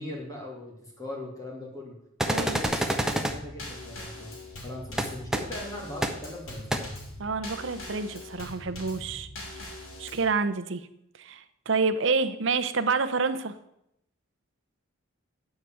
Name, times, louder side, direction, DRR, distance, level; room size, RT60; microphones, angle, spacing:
voice 1, 0.0-1.9 2.3-4.4 4.6-6.9, left 1 dB, 15° left, -2 dB, 2.5 m, -40 dB
sound 1, 2.2-3.3 5.0-5.1 5.3-5.4 6.0-6.1 6.7-6.8, right 1 dB, ahead, 0.7 m, -26 dB
voice 2, 2.3-2.6 7.2-9.3 10.0-10.8 11.2-13.5, right 4 dB, 55° right, 11 dB, 0.7 m, -28 dB
Drum kit / Snare drum / Bass drum, 2.6-10.3, left 1 dB, 65° left, 3.0 m, -42 dB
9.7 x 4.9 x 7.6 m, 0.80 s
head